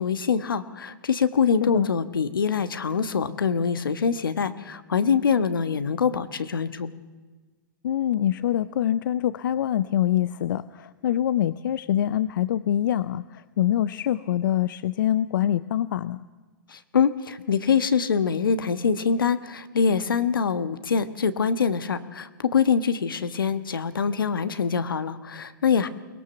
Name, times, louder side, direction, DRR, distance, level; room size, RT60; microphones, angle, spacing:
voice 1, 0.0-6.9 16.7-25.9, left 6 dB, 90° left, 11 dB, 1.3 m, -24 dB
voice 2, 7.8-16.2, left 11 dB, 70° left, 15 dB, 0.6 m, -25 dB
23.0 x 18.5 x 7.0 m, 1.3 s
hypercardioid pair, 125°, 11 cm